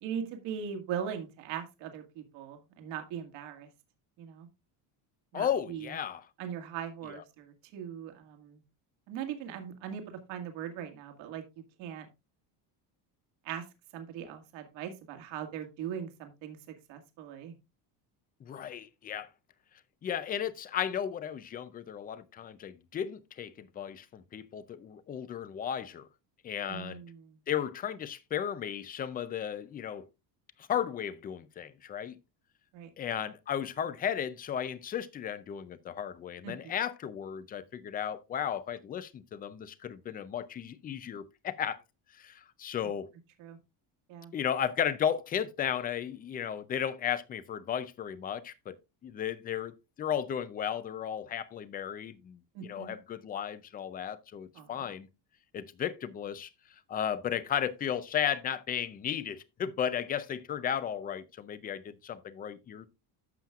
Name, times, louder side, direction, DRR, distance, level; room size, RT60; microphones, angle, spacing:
voice 1, 0.0-3.7 4.2-4.5 5.3-5.9 6.4-8.6 9.1-11.4 11.8-12.1 13.4-13.7 13.9-16.6 16.9-17.5 26.7-27.4 32.7-32.9 36.4-36.5 43.4-43.6 44.1-44.3 52.5-53.0 54.6-54.7, right 8 dB, 75° right, 2.0 m, -40 dB
voice 2, 5.3-6.3 7.0-7.2 18.4-19.3 20.0-26.1 26.4-27.0 27.5-30.1 30.6-32.1 33.0-41.8 42.1-43.1 44.3-48.8 49.0-55.1 55.5-56.5 56.9-62.9, left 9 dB, 20° left, 0.4 m, -34 dB
11.5 x 7.3 x 2.4 m
cardioid pair, 170°, 45 cm